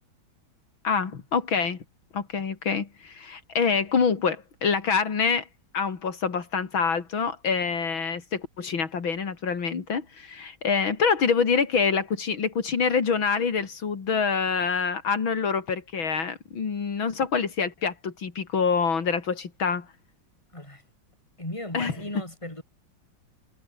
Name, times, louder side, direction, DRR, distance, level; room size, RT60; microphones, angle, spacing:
voice 1, 0.8-1.8 2.1-5.5 5.7-19.9 21.7-21.9, left 5 dB, 80° left, 3.4 m, -26 dB
voice 2, 21.4-22.6, left 1 dB, 15° left, 5.5 m, -36 dB
omnidirectional pair, 2.2 m